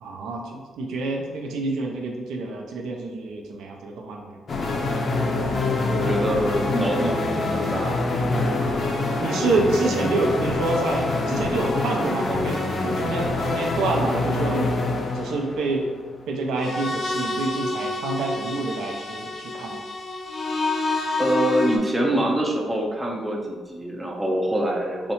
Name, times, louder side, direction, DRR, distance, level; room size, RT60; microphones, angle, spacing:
voice 1, 0.0-4.4 8.5-8.8 9.2-14.8 15.1-15.9 16.3-19.8, right 3 dB, 85° right, 1 dB, 0.4 m, -27 dB
sound 1, 4.5-21.8, left 2 dB, 45° left, 0.4 m, -26 dB
voice 2, 5.9-8.0 21.2-25.1, right 1 dB, 15° right, 0 dB, 0.5 m, -25 dB
2.7 x 2.1 x 2.8 m, 1.4 s
cardioid pair, 90°, 0 cm